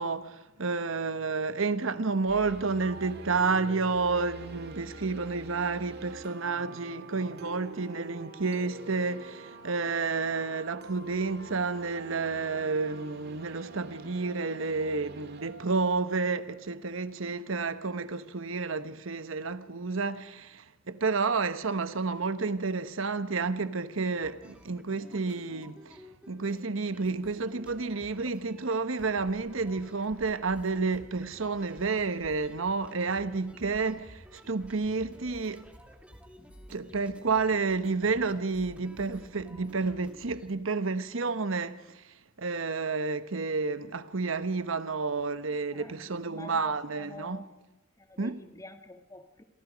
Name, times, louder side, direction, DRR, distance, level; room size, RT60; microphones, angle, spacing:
voice 1, 0.0-26.0 26.3-35.7 36.7-42.0 42.4-47.4 48.2-48.4, right 4 dB, 75° right, 1.0 m, -30 dB
sound 1, 2.3-17.1, right 2 dB, 55° right, 2.0 m, -46 dB
sound 2, 24.2-26.7 26.9-40.5, equal, 5° right, 2.4 m, -52 dB
voice 2, 45.5-47.6 48.0-49.4, left 2 dB, 15° left, 1.5 m, -48 dB
27.5 x 23.5 x 5.1 m
head